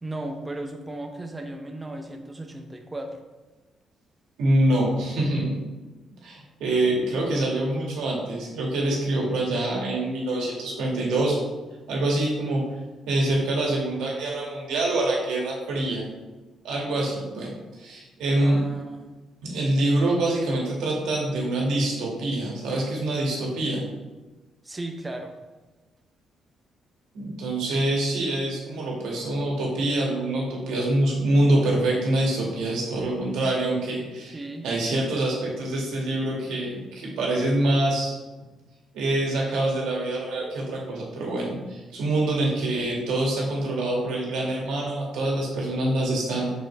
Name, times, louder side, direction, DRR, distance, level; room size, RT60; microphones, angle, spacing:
voice 1, 0.0-3.2 18.4-19.1 24.6-25.3 34.3-34.7, right 1 dB, 20° right, 3 dB, 0.7 m, -35 dB
voice 2, 4.4-5.6 6.2-11.4 11.9-12.6 13.1-16.1 16.6-18.6 19.4-23.8 27.1-38.2 38.9-46.5, right 1 dB, 85° right, -3 dB, 2.0 m, -25 dB
6.1 x 5.1 x 3.4 m, 1.2 s
cardioid pair, 90°, 0 cm